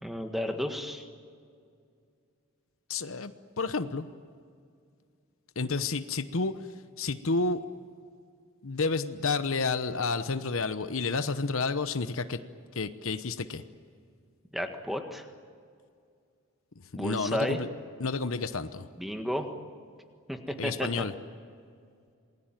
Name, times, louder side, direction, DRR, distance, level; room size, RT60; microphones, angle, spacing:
voice 1, 0.0-1.1 14.5-15.3 16.9-17.6 19.0-19.5 20.3-20.9, equal, ahead, 5 dB, 1.7 m, -32 dB
voice 2, 2.9-4.1 5.6-6.5 7.0-7.6 8.6-12.4 12.7-13.6 17.0-17.7 18.0-18.9 20.6-21.1, left 4 dB, 65° left, 11 dB, 1.0 m, -30 dB
28.0 x 20.5 x 9.1 m, 2.3 s
head